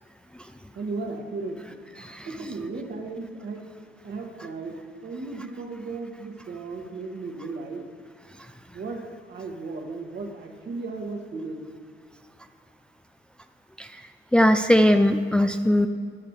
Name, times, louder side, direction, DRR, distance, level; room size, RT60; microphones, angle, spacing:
voice 1, 0.8-3.6 4.0-7.9 8.7-9.0 9.3-11.7, right 3 dB, 60° right, 1 dB, 2.0 m, -35 dB
voice 2, 14.3-15.9, left 1 dB, 5° left, 8 dB, 0.4 m, -19 dB
14.0 x 11.0 x 3.3 m, 2.2 s
cardioid pair, 90°, 20 cm